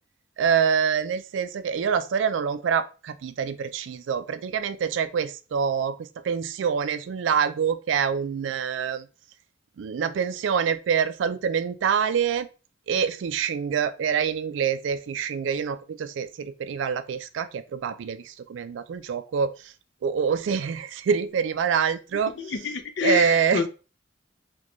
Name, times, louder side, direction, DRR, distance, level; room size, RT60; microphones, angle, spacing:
voice 1, 0.4-9.1 9.8-12.5 12.9-19.5 20.0-22.3 23.0-23.6, right 7 dB, 70° right, 12 dB, 0.3 m, -26 dB
voice 2, 22.4-23.7, left 6 dB, 65° left, 7 dB, 0.5 m, -27 dB
4.1 x 2.2 x 3.0 m, 0.33 s
head